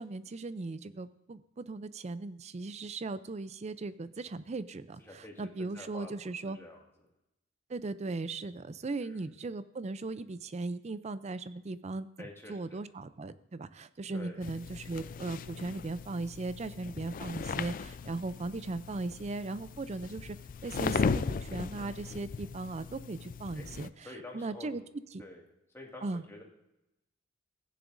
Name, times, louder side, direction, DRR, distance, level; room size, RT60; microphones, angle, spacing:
voice 1, 0.0-6.6 7.7-20.4 20.6-24.8 25.1-25.2 26.0-26.2, right 3 dB, 35° right, 14 dB, 0.4 m, -38 dB
voice 2, 5.0-6.8 9.0-9.3 12.2-12.9 14.1-14.4 23.5-23.7 24.0-24.8 25.2-25.4 25.7-26.4, left 1 dB, 10° left, -1 dB, 2.0 m, -48 dB
sound 1, 14.4-23.9, left 5 dB, 45° left, 0.4 m, -37 dB
15.0 x 10.0 x 2.6 m, 0.90 s
head